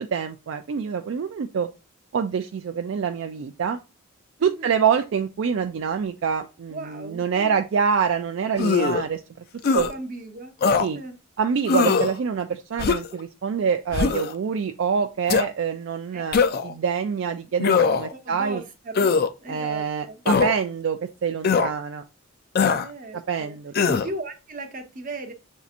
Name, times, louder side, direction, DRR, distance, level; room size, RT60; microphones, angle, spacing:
voice 1, 0.0-1.7 2.1-3.8 4.4-9.2 9.7-9.9 10.8-11.0 11.4-16.4 16.6-18.6 19.5-22.0 23.3-23.7, right 6 dB, 60° right, 0.3 m, -26 dB
voice 2, 4.4-4.7 6.7-7.6 9.6-10.5 10.9-11.2 16.1-16.3 16.7-16.8 17.9-20.2 22.8-23.6 23.9-25.3, right 2 dB, 40° right, 0.7 m, -37 dB
sound 1, 8.6-9.0 9.6-9.9 10.6-10.9 11.7-12.1 12.8-13.2 13.9-14.3 15.3-15.5 16.3-16.7 17.6-18.1 18.9-19.3 20.3-20.5 21.4-21.7 22.6-22.9 23.7-24.1, left 5 dB, 45° left, 0.4 m, -21 dB
7.0 x 2.7 x 2.5 m
head